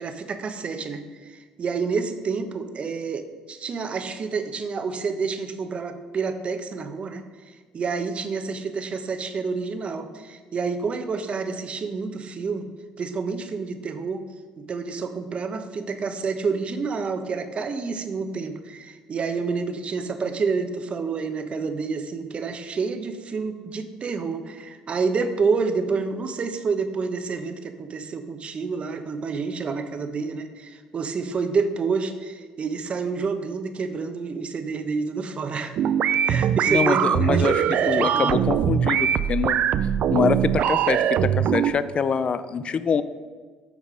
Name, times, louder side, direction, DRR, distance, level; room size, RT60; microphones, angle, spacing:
voice 1, 0.0-3.2 3.5-12.7 13.0-14.2 14.7-35.7 36.2-38.4, right 4 dB, 45° right, 7 dB, 1.0 m, -28 dB
sound 1, 35.8-41.7, right 9 dB, 60° right, 0.4 m, -22 dB
voice 2, 36.7-39.7 40.1-43.0, left 6 dB, 40° left, 13 dB, 0.5 m, -25 dB
8.4 x 5.2 x 5.1 m, 1.4 s
hypercardioid pair, 65°, 3 cm